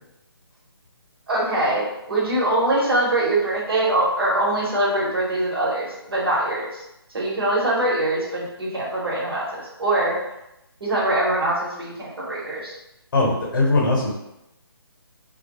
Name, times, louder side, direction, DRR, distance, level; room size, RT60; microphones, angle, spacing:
voice 1, 1.3-6.8 7.1-10.2 10.8-12.7, right 1 dB, 65° right, -5 dB, 1.1 m, -23 dB
voice 2, 13.1-14.1, left 2 dB, 55° left, -3 dB, 1.0 m, -20 dB
2.3 x 2.2 x 3.0 m, 0.88 s
hypercardioid pair, 155°, 13 cm